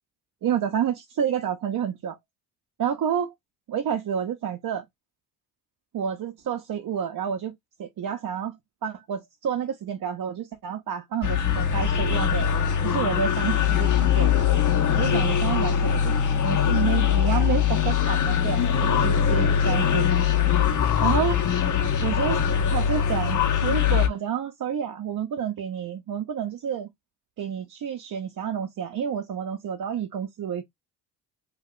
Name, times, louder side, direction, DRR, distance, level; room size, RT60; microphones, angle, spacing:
voice 1, 0.4-2.2 2.8-3.3 3.7-4.8 5.9-12.5 12.8-14.3 15.0-20.1 21.0-21.4 22.0-26.9 27.4-30.6, right 8 dB, 45° right, 0.7 m, -29 dB
sound 1, 11.2-24.1, left 8 dB, 40° left, 0.8 m, -22 dB
2.4 x 2.3 x 3.6 m
hypercardioid pair, 50°, 46 cm